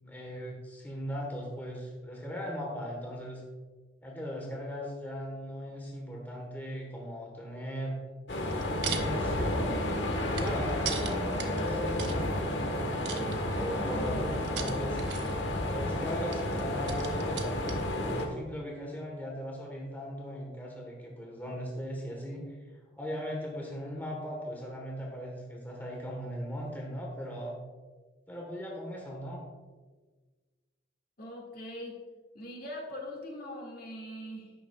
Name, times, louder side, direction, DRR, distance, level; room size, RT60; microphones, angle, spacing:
voice 1, 0.0-3.4 4.0-8.0 8.7-9.8 10.2-15.0 15.7-22.6 23.0-27.6 28.3-29.4, equal, 10° left, -1 dB, 1.3 m, -38 dB
sound 1, 8.3-18.3, left 1 dB, 80° left, 1.4 m, -31 dB
sound 2, 8.5-9.1 9.5-12.2 13.1-13.8 14.4-15.5 16.3-17.9 18.2-18.3, right 9 dB, 75° right, 0.8 m, -39 dB
voice 2, 31.2-32.0 32.3-34.5, left 1 dB, 55° left, -1 dB, 2.0 m, -41 dB
11.5 x 9.2 x 2.4 m, 1.4 s
head